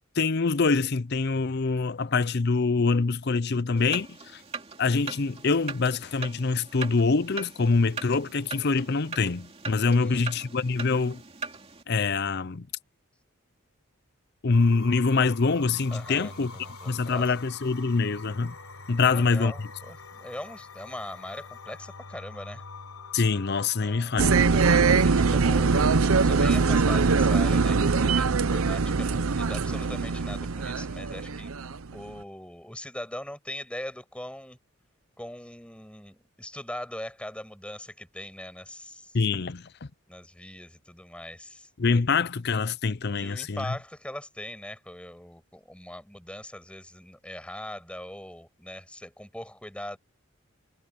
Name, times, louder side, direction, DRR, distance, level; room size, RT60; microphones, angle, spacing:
voice 1, 0.2-4.1 4.3-4.4 4.8-11.2 11.9-12.7 14.4-16.5 16.9-18.5 18.9-19.5 23.1-24.4 39.1-39.9 41.8-43.8, left 4 dB, 50° left, 0.6 m, -25 dB
sound 1, 3.8-11.8, right 4 dB, 30° right, 2.9 m, -40 dB
voice 2, 9.8-10.3 15.9-17.4 19.0-22.6 23.8-24.2 24.5-31.5 31.9-34.6 35.2-39.2 40.1-41.7 43.1-50.0, left 1 dB, 5° left, 7.0 m, -41 dB
sound 2, 14.5-26.0, left 3 dB, 90° left, 3.6 m, -45 dB
sound 3, 24.2-31.9, right 4 dB, 80° right, 0.7 m, -22 dB
head